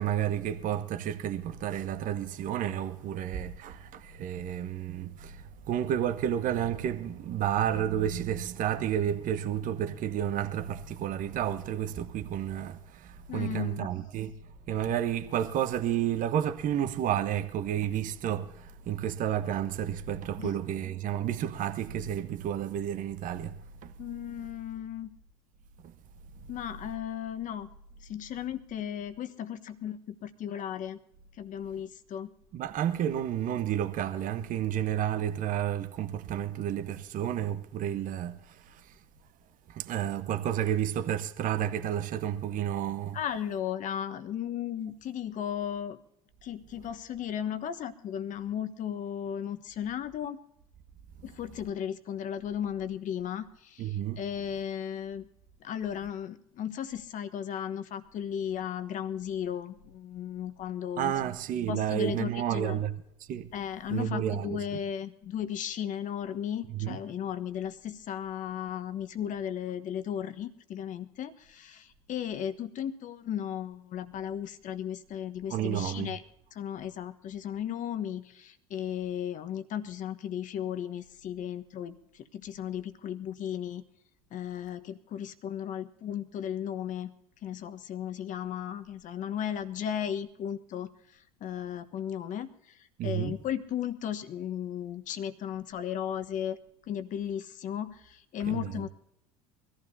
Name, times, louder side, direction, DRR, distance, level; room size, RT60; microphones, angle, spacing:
voice 1, 0.0-14.3 14.7-23.6 23.8-23.9 32.5-38.8 39.7-43.2 53.8-54.2 61.0-62.9 63.3-63.5 63.9-64.6 66.7-67.0 75.5-76.1 93.0-93.4 98.5-98.8, right 10 dB, 45° right, 1.1 m, -31 dB
voice 2, 13.3-13.9 20.4-20.5 24.0-25.1 26.5-27.7 28.1-31.0 31.4-32.3 43.1-46.0 46.4-50.4 51.2-55.3 55.6-61.1 61.7-62.8 63.5-76.2 76.5-83.8 84.3-87.1 87.4-90.9 91.4-92.5 93.0-96.6 96.9-98.9, left 9 dB, 45° left, 1.3 m, -35 dB
23.5 x 14.5 x 2.8 m
hypercardioid pair, 75°, 19 cm